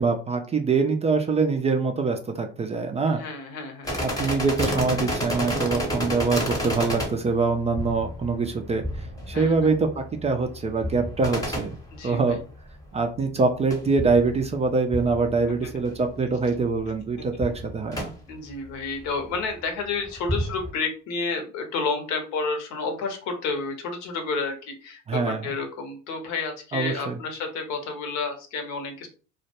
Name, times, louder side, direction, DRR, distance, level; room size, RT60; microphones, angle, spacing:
voice 1, 0.0-3.2 4.0-11.8 12.0-12.4 12.9-18.1 25.1-25.4 26.7-27.2, right 4 dB, 20° right, 4 dB, 0.3 m, -24 dB
voice 2, 3.1-4.5 9.3-9.7 11.9-12.4 17.1-17.2 18.3-29.1, left 4 dB, 65° left, 5 dB, 0.8 m, -31 dB
sound 1, 3.8-12.7 13.7-16.1 16.3-16.4 16.7-17.0 17.4-18.1 19.3-19.4 20.1-20.7, equal, 10° left, 0.8 m, -31 dB
2.1 x 2.1 x 2.8 m, 0.37 s
hypercardioid pair, 75°, 31 cm